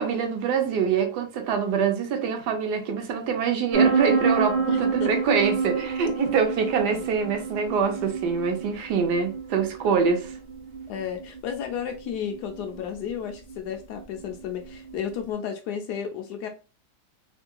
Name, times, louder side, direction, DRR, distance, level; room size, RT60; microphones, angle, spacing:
voice 1, 0.0-10.4, right 6 dB, 75° right, 1.2 m, -25 dB
sound 1, 3.7-15.2, right 5 dB, 40° right, 0.7 m, -29 dB
voice 2, 4.7-5.2 6.9-7.1 10.9-16.5, left 8 dB, 75° left, 1.1 m, -33 dB
3.6 x 2.5 x 2.2 m
omnidirectional pair, 1.8 m